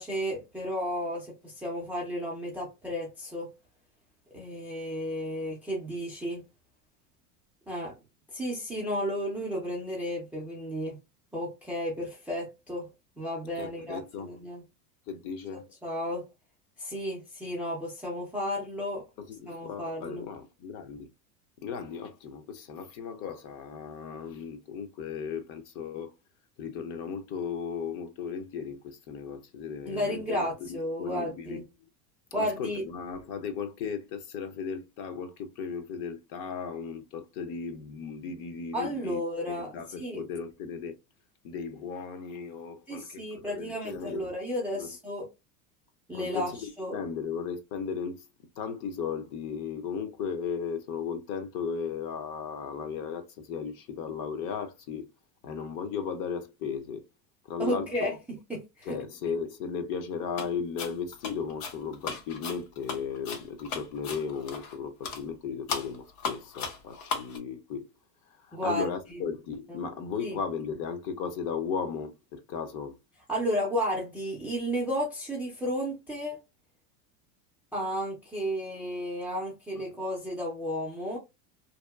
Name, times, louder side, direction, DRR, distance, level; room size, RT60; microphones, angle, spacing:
voice 1, 0.0-3.5 4.3-6.4 7.7-7.9 8.3-11.0 11.3-12.9 13.2-14.6 15.5-16.3 16.8-19.0 19.5-20.2 29.8-31.6 32.3-32.8 38.7-40.2 42.9-45.3 46.1-47.0 57.6-59.0 68.5-68.8 69.7-69.8 70.2-70.4 73.3-76.4 77.7-81.2, equal, 5° right, 0.3 m, -33 dB
voice 2, 13.6-14.3 15.1-15.7 19.2-21.1 21.6-26.1 26.6-31.6 32.3-39.2 39.5-40.9 41.4-44.3 44.8-44.9 46.1-48.2 48.6-55.1 55.4-57.0 57.4-58.1 58.8-67.9 68.3-73.0 79.7-79.8, left 6 dB, 45° left, 0.7 m, -36 dB
sound 1, 60.3-60.5 60.8-64.8 65.0-65.2 65.7-67.4, left 5 dB, 70° left, 1.0 m, -36 dB
2.8 x 2.2 x 2.2 m
supercardioid pair, 125°, 46 cm